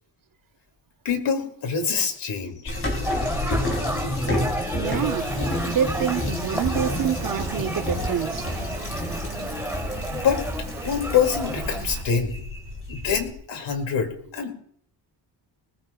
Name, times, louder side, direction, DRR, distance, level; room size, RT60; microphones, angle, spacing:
voice 1, 1.0-2.8 10.1-10.4 10.8-12.4 12.9-14.5, left 6 dB, 75° left, 2.4 m, -25 dB
sound 1, 2.7-13.3, left 1 dB, 30° left, 3.3 m, -30 dB
sound 2, 3.0-11.8, equal, 5° right, 1.4 m, -33 dB
voice 2, 4.8-5.4 5.7-8.5, right 9 dB, 50° right, 0.6 m, -27 dB
Rain, 4.9-12.0, right 5 dB, 80° right, 2.7 m, -38 dB
20.5 x 19.5 x 2.3 m
wide cardioid pair, 130°, 44 cm